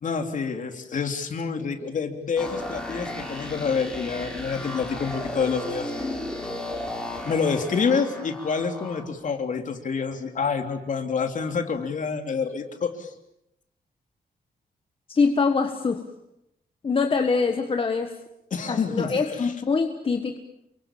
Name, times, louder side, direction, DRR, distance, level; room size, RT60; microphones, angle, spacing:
voice 1, 0.0-5.9 7.2-13.1 18.5-19.1 19.4-19.5, left 5 dB, 50° left, 6 dB, 3.1 m, -27 dB
sound 1, 2.4-9.0, left 1 dB, 5° left, 5.3 m, -34 dB
voice 2, 15.1-16.0 16.8-18.1 18.7-20.4, left 4 dB, 35° left, 5 dB, 1.6 m, -24 dB
29.0 x 24.0 x 7.4 m, 0.81 s
wide cardioid pair, 160°, 16 cm